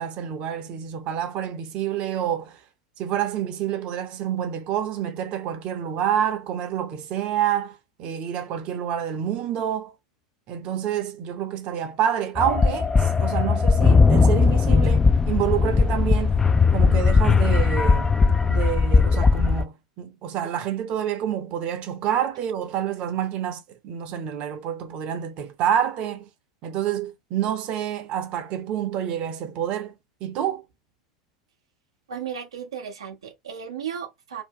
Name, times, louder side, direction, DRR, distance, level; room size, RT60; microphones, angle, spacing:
voice 1, 0.0-2.6 3.0-9.9 10.5-15.0 15.3-16.4 16.7-18.2 18.5-26.3 26.6-30.6, right 10 dB, 45° right, 0.7 m, -28 dB
sound 1, 12.4-19.6, left 4 dB, 15° left, 0.4 m, -18 dB
voice 2, 32.1-34.4, right 8 dB, 75° right, 0.7 m, -35 dB
2.8 x 2.1 x 3.7 m
figure-of-eight pair, 85°, 3 cm